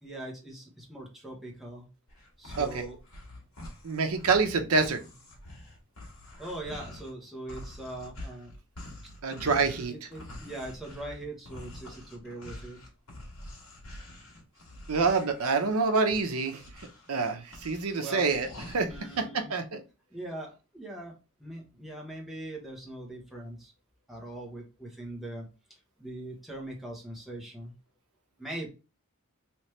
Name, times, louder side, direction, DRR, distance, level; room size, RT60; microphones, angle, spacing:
voice 1, 0.0-1.9 2.4-2.9 6.4-8.5 9.9-12.8 18.0-18.3 18.9-19.5 20.1-23.7 24.1-27.7 28.4-28.7, right 1 dB, ahead, -2 dB, 1.0 m, -41 dB
sound 1, 2.1-7.1 7.5-19.2, left 1 dB, 70° left, 1.6 m, -46 dB
voice 2, 3.8-5.0 9.2-9.9 14.9-16.6 17.1-18.9 19.2-19.3 19.5-19.8, right 4 dB, 85° right, 6 dB, 0.7 m, -26 dB
3.2 x 3.1 x 3.1 m, 0.30 s
head